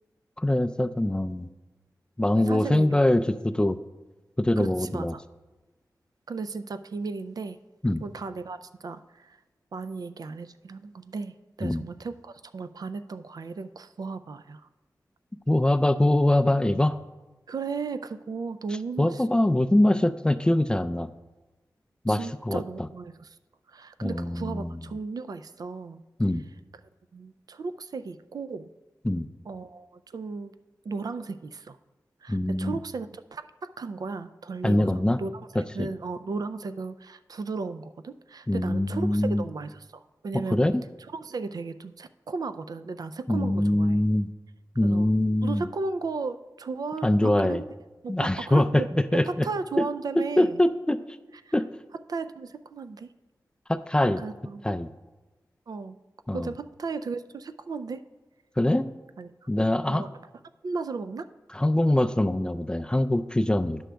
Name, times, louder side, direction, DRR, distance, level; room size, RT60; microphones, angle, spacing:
voice 1, 0.4-1.5 2.2-3.8 4.4-5.1 7.8-8.0 11.6-11.8 15.5-17.0 19.0-21.1 22.0-22.6 24.0-24.8 26.2-26.4 29.0-29.3 32.3-32.8 34.6-35.2 35.6-35.9 38.5-39.5 40.5-40.8 43.3-44.3 44.8-45.7 47.0-47.6 48.1-49.5 49.8-49.9 50.2-51.0 51.5-51.7 53.7-54.2 54.6-54.9 56.3-56.5 58.6-58.9 59.5-60.1 61.5-63.8, left 1 dB, 15° left, 11 dB, 0.4 m, -23 dB
voice 2, 2.3-3.0 4.6-5.2 6.3-7.6 8.0-9.4 9.7-14.7 17.5-19.2 22.1-23.3 23.7-26.0 27.1-28.7 29.5-30.5 30.8-31.8 32.2-40.6 41.1-44.0 44.8-45.1 45.4-47.6 48.0-48.9 49.1-50.6 51.4-51.5 52.1-53.1 54.2-54.6 55.7-56.0 56.3-58.0 59.2-59.3 59.9-60.1 60.6-61.3, right 4 dB, 65° right, 11 dB, 0.4 m, -35 dB
10.0 x 6.2 x 3.4 m, 1.1 s
wide cardioid pair, 70°, 7 cm